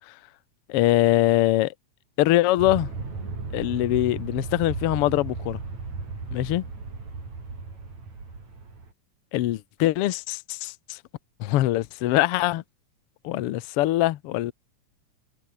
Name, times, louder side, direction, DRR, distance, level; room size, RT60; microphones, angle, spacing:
voice 1, 0.7-1.7 2.2-2.9 3.5-5.6 6.3-6.6 9.3-11.0 11.4-12.6 13.2-14.5, left 15 dB, 70° left, 1.5 m, -23 dB
Aircraft, 2.6-8.9, right 4 dB, 65° right, 7.5 m, -35 dB
omnidirectional pair, 3.4 m